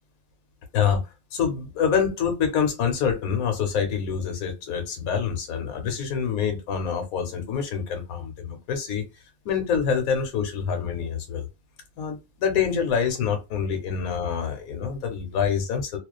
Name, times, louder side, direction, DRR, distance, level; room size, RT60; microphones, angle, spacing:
voice 1, 1.3-9.0 9.4-11.5 12.0-16.0, left 7 dB, 75° left, 1.2 m, -26 dB
2.4 x 2.4 x 2.2 m
omnidirectional pair, 1.5 m